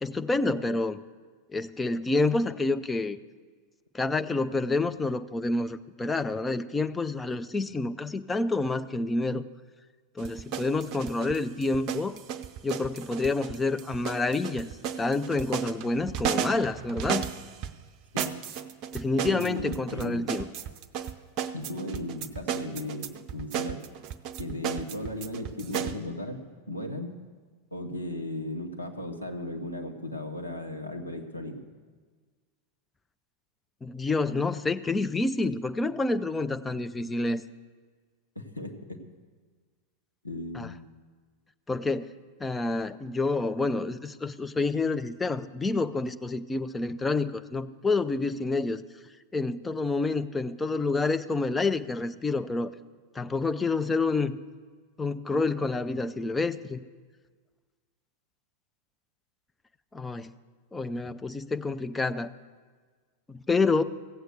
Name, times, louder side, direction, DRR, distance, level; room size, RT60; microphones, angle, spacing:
voice 1, 0.0-1.0 1.5-3.2 3.9-9.4 10.2-12.2 12.6-14.7 15.0-17.3 18.9-20.5 33.8-37.4 40.5-40.7 41.7-42.1 42.4-48.8 49.3-52.7 53.1-54.4 55.0-56.8 59.9-60.3 60.7-62.3 63.3-63.8, left 3 dB, 10° left, 10 dB, 0.4 m, -28 dB
sound 1, 10.2-17.7 18.2-26.0, right 8 dB, 40° right, 0.6 m, -34 dB
voice 2, 19.2-20.3 21.5-23.8 24.4-27.2 27.7-31.6 38.3-39.0 40.2-40.9, left 1 dB, 85° left, 3 dB, 1.2 m, -36 dB
16.0 x 8.0 x 6.6 m, 1.5 s
figure-of-eight pair, 90°, 0 cm